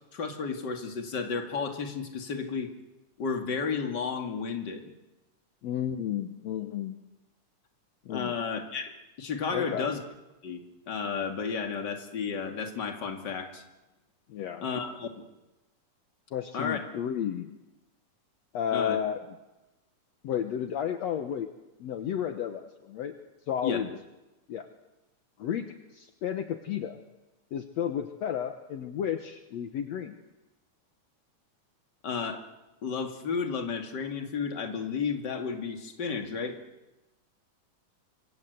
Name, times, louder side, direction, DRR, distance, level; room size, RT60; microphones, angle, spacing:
voice 1, 0.1-2.7 3.2-4.9 8.1-8.9 9.2-10.0 10.4-10.6 10.9-13.6 14.6-15.1 16.5-16.8 18.7-19.0 23.6-23.8 32.0-32.4 32.8-36.6, left 5 dB, 35° left, 4 dB, 2.7 m, -32 dB
voice 2, 5.6-7.0 8.1-8.3 9.5-9.9 14.3-14.6 16.3-17.6 18.5-19.2 20.2-21.5 21.8-23.1 23.5-23.9 24.5-24.7 25.4-27.0 27.5-30.2, left 9 dB, 65° left, 7 dB, 2.3 m, -32 dB
26.5 x 25.5 x 8.1 m, 1.1 s
omnidirectional pair, 3.5 m